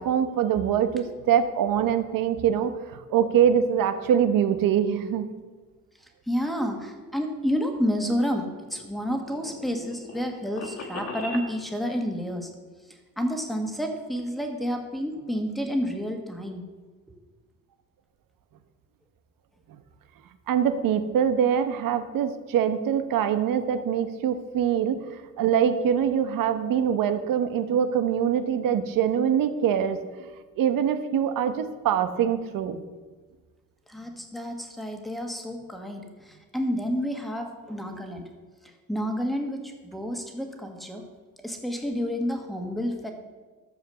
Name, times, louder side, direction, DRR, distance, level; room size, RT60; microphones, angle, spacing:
voice 1, 0.0-5.3 20.5-25.0 25.4-30.0 30.6-32.8, right 8 dB, 75° right, 10 dB, 1.1 m, -24 dB
voice 2, 6.3-12.5 12.9-16.6 33.9-38.3 38.9-41.0 41.4-43.1, equal, ahead, 3 dB, 1.5 m, -30 dB
sound 1, 8.4-11.5, left 3 dB, 45° left, 1.8 m, -39 dB
13.5 x 7.1 x 6.8 m, 1.3 s
cardioid pair, 155°, 34 cm